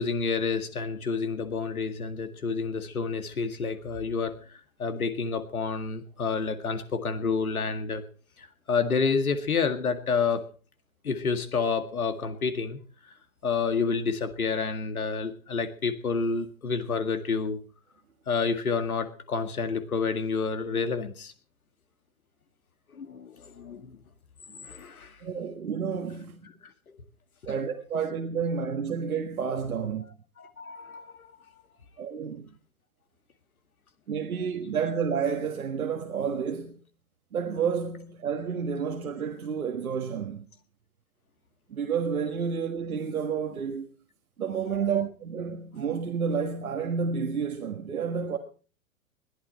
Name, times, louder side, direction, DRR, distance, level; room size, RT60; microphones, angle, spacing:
voice 1, 0.0-8.0 8.4-10.4 11.0-12.8 13.4-17.6 18.3-21.3 22.9-24.0 24.6-25.2 27.4-27.5 30.4-31.3, left 5 dB, 80° left, 2.1 m, -29 dB
voice 2, 25.2-26.5 27.5-30.0 32.0-32.5 34.1-36.8 37.3-40.4 41.7-43.9 44.4-48.4, right 6 dB, 80° right, 1.8 m, -30 dB
20.5 x 12.0 x 4.3 m
figure-of-eight pair, 110°, 43 cm